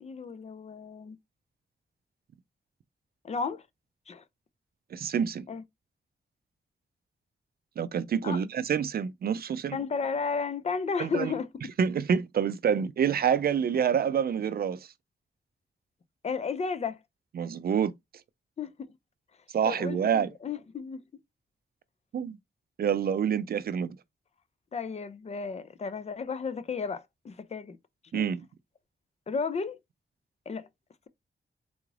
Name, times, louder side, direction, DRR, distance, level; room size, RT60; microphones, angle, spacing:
voice 1, 0.0-1.2 3.2-3.6 4.1-4.2 5.5-5.6 8.2-8.4 9.7-11.5 16.2-17.0 18.6-18.9 19.6-21.0 24.7-27.8 28.1-28.3 29.3-29.8 30.5-30.7, left 5 dB, 35° left, 0.4 m, -33 dB
voice 2, 4.9-5.4 7.8-9.8 11.0-11.3 11.8-14.9 17.3-17.9 19.5-20.3 22.1-22.4 22.8-24.0 28.1-28.5, right 7 dB, 55° right, 0.4 m, -27 dB
3.8 x 2.4 x 3.1 m
wide cardioid pair, 155°, 18 cm